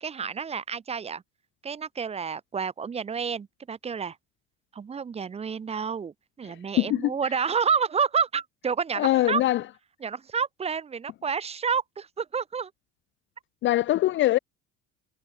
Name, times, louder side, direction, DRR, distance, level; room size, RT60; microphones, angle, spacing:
voice 1, 0.0-1.2 1.6-4.2 4.7-9.4 10.0-12.7, right 6 dB, 20° right, 1.3 m, -29 dB
voice 2, 6.8-7.1 9.0-9.6 13.6-14.4, left 15 dB, 40° left, 0.5 m, -22 dB
cardioid pair, 170°, 30 cm